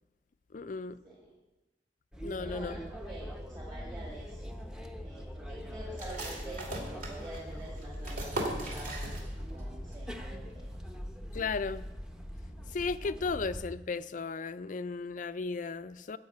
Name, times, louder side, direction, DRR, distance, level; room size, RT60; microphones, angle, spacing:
voice 1, 0.5-1.0 2.2-2.8 11.3-11.9 12.7-16.2, left 4 dB, 45° left, 14 dB, 0.4 m, -35 dB
sound 1, 2.1-13.7, equal, 5° right, 0.7 m, -42 dB
voice 2, 2.4-4.5 5.0-9.0 9.5-10.7, right 1 dB, 20° right, -4 dB, 2.0 m, -47 dB
sound 2, 6.0-9.6 9.9-10.0 10.4-10.9, right 1 dB, 50° right, 2.6 m, -39 dB
14.5 x 5.3 x 8.4 m, 1.1 s
head